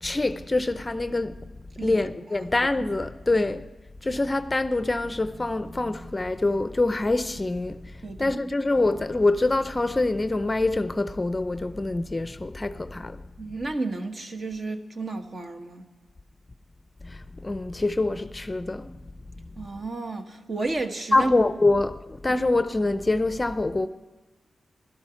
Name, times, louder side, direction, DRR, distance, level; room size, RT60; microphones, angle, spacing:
voice 1, 0.0-1.4 1.8-3.6 4.0-7.8 8.2-13.2 17.0-19.0 21.1-23.9, left 2 dB, 25° left, 0.6 m, -25 dB
voice 2, 8.0-8.3 13.4-15.8 19.6-21.3 22.3-22.4, right 3 dB, 45° right, 1.4 m, -32 dB
12.5 x 12.5 x 5.8 m
cardioid pair, 75°, 0 cm